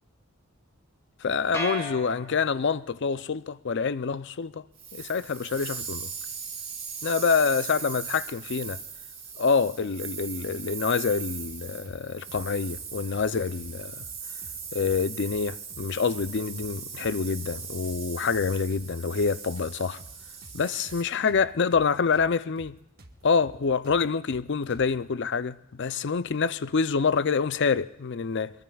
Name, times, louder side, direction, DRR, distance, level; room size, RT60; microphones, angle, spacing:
voice 1, 1.2-4.6 4.9-6.1 7.0-8.8 9.4-14.1 14.7-20.0 20.5-22.8 23.2-28.5, left 5 dB, 50° left, 0.5 m, -26 dB
sound 1, 1.5-2.9, left 1 dB, 15° left, 2.5 m, -35 dB
sound 2, 4.8-21.0, right 6 dB, 25° right, 3.1 m, -39 dB
sound 3, 11.4-12.0 12.3-12.4 12.7-13.7 14.0-14.1 14.4-15.4 15.7-15.9 16.1-17.1 17.4-17.6 17.8-19.3 19.6-22.3 22.6-22.7 23.0-25.0, right 1 dB, 45° right, 1.3 m, -50 dB
24.0 x 22.5 x 2.4 m
head